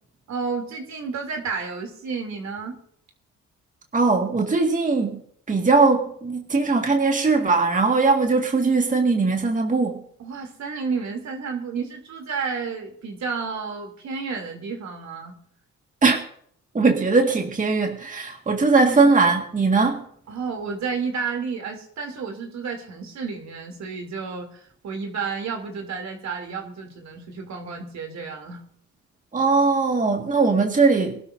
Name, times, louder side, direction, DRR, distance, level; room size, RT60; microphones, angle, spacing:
voice 1, 0.3-2.8 10.2-15.3 18.7-19.1 20.3-28.6, right 5 dB, 65° right, 3 dB, 3.2 m, -31 dB
voice 2, 3.9-5.2 5.5-10.0 16.0-16.2 16.7-20.0 29.3-31.2, right 4 dB, 25° right, 3 dB, 1.9 m, -20 dB
23.5 x 12.5 x 2.7 m, 0.64 s
cardioid pair, 90°, 30 cm